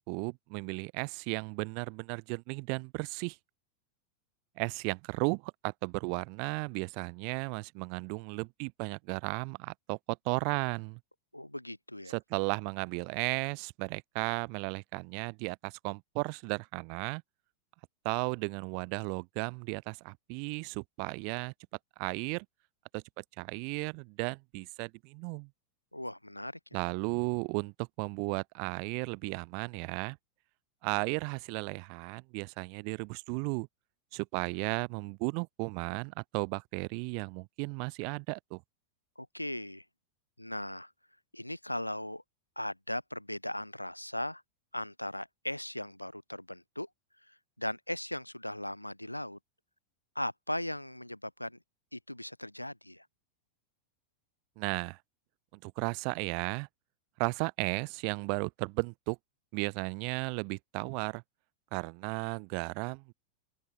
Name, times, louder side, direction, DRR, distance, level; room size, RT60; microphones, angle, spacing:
voice 1, 0.1-3.4 4.6-11.0 12.1-17.2 18.0-21.5 22.0-22.5 22.9-25.5 26.7-30.2 30.8-33.7 34.1-38.6 54.6-55.0 55.6-56.7 57.2-59.2 59.5-61.2 61.7-63.1, right 40 dB or more, 45° right, 0.7 m, -35 dB
voice 2, 11.3-12.1 25.9-26.8 39.2-39.8 40.4-40.9 41.3-42.2 42.6-44.4 44.7-46.9 47.3-49.4 50.1-51.6 51.9-53.1, left 1 dB, 85° left, 2.3 m, -38 dB
open air
figure-of-eight pair, 90°, 0 cm